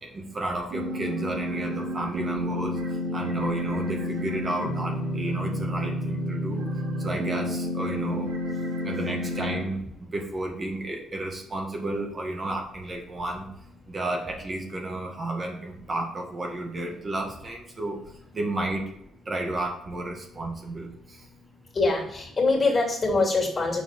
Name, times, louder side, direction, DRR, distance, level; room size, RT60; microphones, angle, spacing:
voice 1, 0.0-2.8 3.1-6.6 7.0-8.3 8.8-13.5 13.9-18.0 18.3-18.8 19.3-21.2, right 2 dB, 35° right, 1 dB, 1.7 m, -32 dB
sound 1, 0.7-9.6, left 1 dB, 85° right, 3.2 m, -30 dB
voice 2, 21.7-23.8, left 3 dB, 35° left, 0 dB, 2.9 m, -23 dB
6.8 x 4.5 x 5.8 m, 0.77 s
cardioid pair, 90°, 0 cm